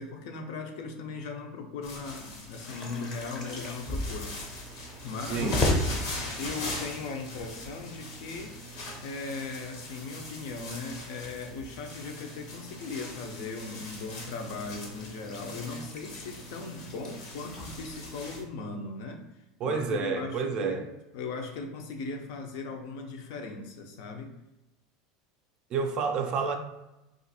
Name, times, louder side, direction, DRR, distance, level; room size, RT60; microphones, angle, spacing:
voice 1, 0.0-4.3 5.0-5.5 6.4-8.5 9.0-19.2 19.6-20.8 21.1-24.4, left 4 dB, 65° left, 0.6 m, -38 dB
sound 1, 1.8-18.4, left 2 dB, 85° left, 1.1 m, -41 dB
sound 2, 2.6-18.4, left 1 dB, 20° left, 0.6 m, -38 dB
voice 2, 5.3-5.6 19.6-20.9 25.7-26.6, right 5 dB, 35° right, 0.3 m, -29 dB
2.5 x 2.4 x 4.1 m
supercardioid pair, 155°, 3 cm